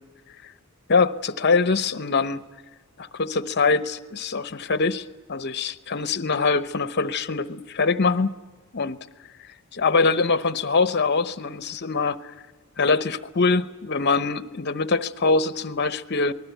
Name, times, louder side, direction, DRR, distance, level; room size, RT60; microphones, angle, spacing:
voice 1, 0.9-2.4 3.0-8.4 8.7-9.0 9.7-12.2 12.8-16.3, left 4 dB, 50° left, 12 dB, 0.9 m, -23 dB
26.5 x 19.5 x 9.2 m, 1.4 s
head